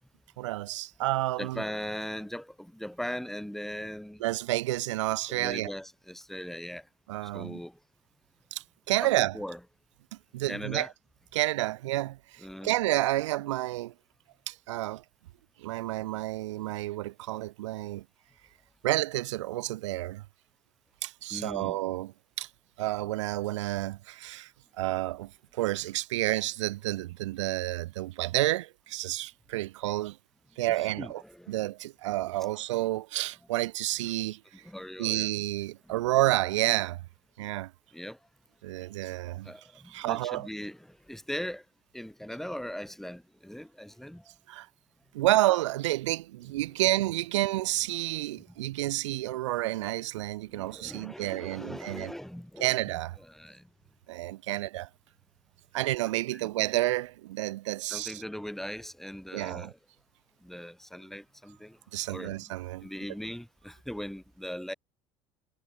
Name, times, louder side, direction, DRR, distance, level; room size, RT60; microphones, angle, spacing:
voice 1, 0.4-1.6 4.2-5.7 7.1-7.6 8.5-9.4 10.3-10.9 11.3-13.9 14.5-15.0 15.6-18.0 18.8-20.2 21.0-22.1 22.4-22.5 22.8-24.5 24.8-30.2 30.6-31.2 31.5-34.6 35.0-37.0 37.4-37.7 38.6-39.5 39.9-40.5 44.5-44.7 45.1-52.1 52.6-53.2 54.1-54.9 55.7-58.2 59.3-59.7 61.9-62.9, right 16 dB, 85° right, 1.2 m, -30 dB
voice 2, 1.4-4.2 5.3-6.9 7.2-7.8 9.0-9.6 10.5-10.9 12.4-12.7 21.3-21.8 31.0-31.6 34.6-35.3 35.8-36.0 37.9-38.2 39.4-41.6 41.9-44.3 50.5-52.8 53.2-53.7 56.3-56.5 57.9-59.8 60.4-61.8 62.1-62.5 62.8-64.7, equal, ahead, 2.7 m, -39 dB
hypercardioid pair, 75°, 15 cm